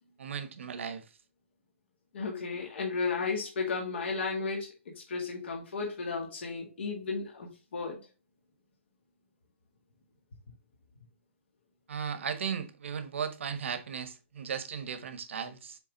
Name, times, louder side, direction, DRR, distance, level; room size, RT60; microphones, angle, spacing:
voice 1, 0.2-1.0 11.9-15.8, right 7 dB, 65° right, 1.2 m, -36 dB
voice 2, 2.1-4.7 5.1-8.0, left 4 dB, 60° left, 1.9 m, -34 dB
7.3 x 3.8 x 3.9 m
hypercardioid pair, 170°, 7 cm